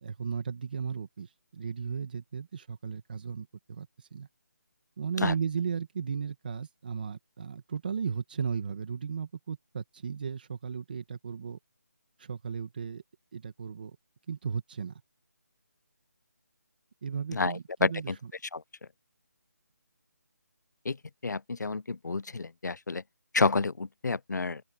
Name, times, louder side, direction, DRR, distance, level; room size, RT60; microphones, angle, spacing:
voice 1, 0.0-4.3 5.0-11.6 12.2-13.0 13.3-14.0 14.3-15.0 17.0-18.3, right 6 dB, 30° right, 2.0 m, -35 dB
voice 2, 17.3-18.2 18.5-18.6 20.8-21.0 21.2-23.0 23.3-24.6, left 4 dB, 90° left, 0.6 m, -29 dB
open air
figure-of-eight pair, 175°, 9 cm